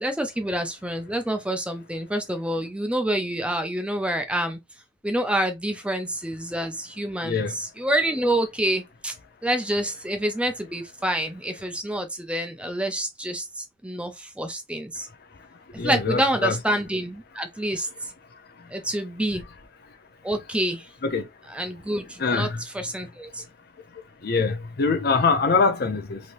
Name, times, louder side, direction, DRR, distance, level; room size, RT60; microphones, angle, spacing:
voice 1, 0.0-4.6 5.0-9.1 9.4-15.1 15.8-17.9 18.7-19.4 20.2-20.9 21.5-23.4, right 1 dB, 5° right, 0.4 m, -27 dB
voice 2, 7.2-7.6 15.8-16.5 21.0-21.3 22.2-22.6 24.2-26.2, left 4 dB, 55° left, 0.6 m, -23 dB
3.2 x 2.8 x 2.6 m
head